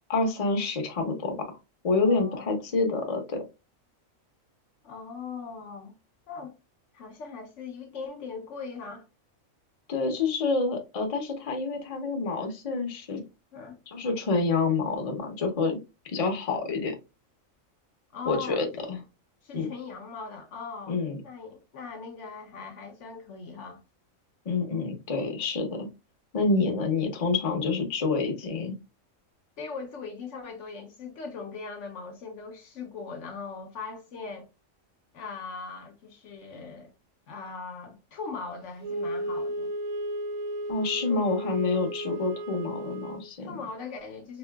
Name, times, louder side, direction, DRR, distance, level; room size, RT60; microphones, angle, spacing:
voice 1, 0.1-1.5 1.8-3.4 9.9-13.2 13.9-15.8 16.0-16.9 18.3-19.0 19.5-19.7 20.9-21.2 24.5-25.9 26.3-28.8 40.7-43.5, left 3 dB, 35° left, 0.7 m, -27 dB
voice 2, 2.0-2.5 4.8-6.0 6.3-6.6 6.9-9.1 13.5-13.8 18.1-18.6 19.4-23.8 29.6-34.5 35.1-36.9 37.3-39.7 41.1-41.3 43.4-44.4, left 5 dB, 70° left, 0.9 m, -40 dB
Wind instrument woodwind instrument, 38.8-43.3, right 1 dB, 90° right, 1.1 m, -34 dB
4.1 x 2.6 x 2.2 m
omnidirectional pair, 1.4 m